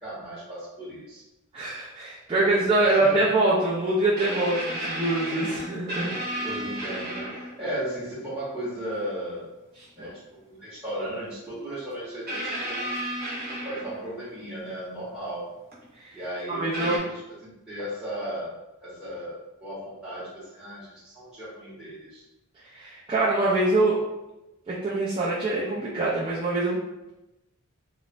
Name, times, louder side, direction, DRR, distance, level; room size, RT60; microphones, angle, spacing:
voice 1, 0.0-1.2 2.3-3.3 6.3-9.5 10.0-13.0 13.6-15.5 16.1-17.0 17.4-18.5 18.8-22.2, right 1 dB, 5° right, -12 dB, 0.8 m, -36 dB
voice 2, 1.5-6.1 10.0-10.1 16.0-16.2 16.5-17.0 22.7-24.0 24.7-26.8, right 2 dB, 25° right, -7 dB, 0.4 m, -24 dB
sound 1, 2.6-2.8 4.2-7.7 8.9-9.0 10.9-11.0 12.3-14.3 15.7-15.8 16.7-17.0, right 1 dB, 45° right, 0.8 m, -33 dB
3.0 x 2.0 x 2.4 m, 0.97 s
head